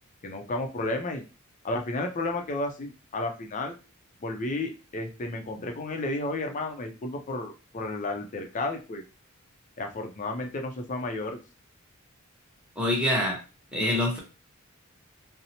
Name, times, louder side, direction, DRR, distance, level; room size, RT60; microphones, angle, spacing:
voice 1, 0.2-1.2 1.6-3.8 4.2-9.0 9.8-11.4, left 2 dB, 35° left, 4 dB, 0.5 m, -32 dB
voice 2, 12.8-13.4 13.7-14.2, left 1 dB, 5° right, -3 dB, 0.8 m, -25 dB
2.7 x 2.0 x 2.7 m, 0.31 s
head